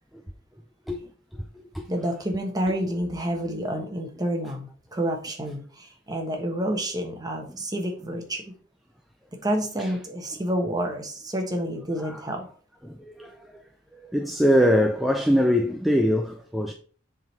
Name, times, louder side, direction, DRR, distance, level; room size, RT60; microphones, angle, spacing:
voice 1, 1.9-8.4 9.4-12.4, right 1 dB, 20° right, 1.2 m, -29 dB
voice 2, 12.8-13.6 14.1-16.7, equal, ahead, 0.4 m, -23 dB
7.4 x 3.8 x 4.1 m
head